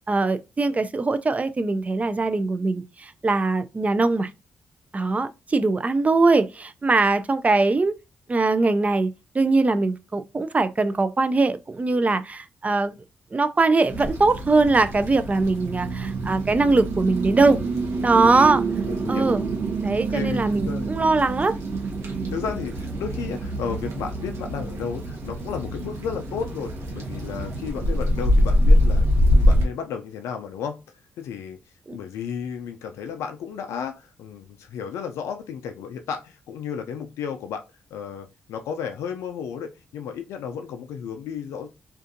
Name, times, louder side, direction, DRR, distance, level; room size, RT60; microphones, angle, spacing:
voice 1, 0.1-4.3 4.9-7.9 8.3-12.9 13.3-17.6 18.0-18.6 19.1-19.4 19.8-21.6 31.9-32.0, right 3 dB, 30° right, 0.3 m, -21 dB
sound 1, 13.9-29.6, equal, 75° right, 0.7 m, -25 dB
voice 2, 18.9-19.3 20.1-20.9 22.3-30.8 31.2-31.6 31.9-37.6 37.9-41.7, left 7 dB, 80° left, 0.3 m, -33 dB
2.5 x 2.4 x 2.5 m
supercardioid pair, 45°, 5 cm